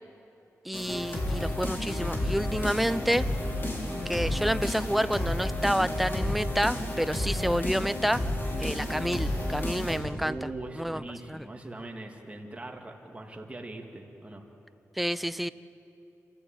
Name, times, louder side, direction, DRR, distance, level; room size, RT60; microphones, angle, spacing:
voice 1, 0.6-3.3 4.1-8.2 8.6-10.5 10.8-11.0 11.3-11.5 15.0-15.5, equal, ahead, 14 dB, 0.6 m, -29 dB
sound 1, 0.7-10.0, left 1 dB, 40° left, 5.0 m, -31 dB
voice 2, 10.2-14.4, right 2 dB, 20° right, 1 dB, 2.4 m, -41 dB
27.0 x 15.0 x 9.1 m, 3.0 s
cardioid pair, 85°, 6 cm